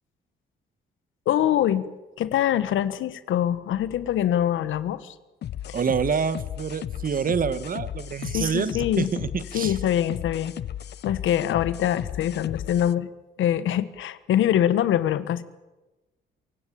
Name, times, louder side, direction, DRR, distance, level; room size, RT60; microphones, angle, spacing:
voice 1, 1.2-1.9 2.2-5.1 8.3-9.1 9.5-10.5 11.0-13.1 13.4-15.4, left 11 dB, 80° left, 15 dB, 1.4 m, -24 dB
sound 1, 5.4-12.9, left 10 dB, 60° left, 0.7 m, -35 dB
voice 2, 5.7-9.8, right 6 dB, 45° right, 15 dB, 1.5 m, -27 dB
27.0 x 16.5 x 8.7 m, 1.1 s
cardioid pair, 90°, 20 cm